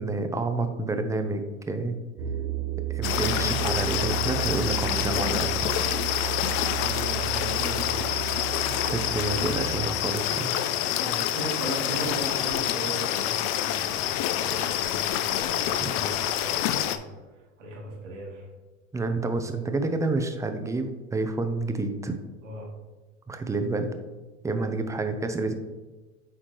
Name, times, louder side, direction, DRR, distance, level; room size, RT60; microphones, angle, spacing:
voice 1, 0.0-2.0 2.9-5.5 8.7-10.6 15.8-15.9 18.9-22.1 23.3-23.9 24.4-25.5, right 3 dB, 10° right, 7 dB, 0.6 m, -29 dB
sound 1, 2.2-9.9, right 15 dB, 40° right, 0.9 m, -33 dB
sound 2, 3.0-17.0, left 11 dB, 50° left, 0.5 m, -27 dB
voice 2, 6.8-8.1 11.0-14.0 14.4-18.5 22.4-22.7 24.5-24.7, right 2 dB, 80° right, -2 dB, 1.9 m, -38 dB
8.7 x 3.6 x 3.1 m, 1.2 s
hypercardioid pair, 90°, 36 cm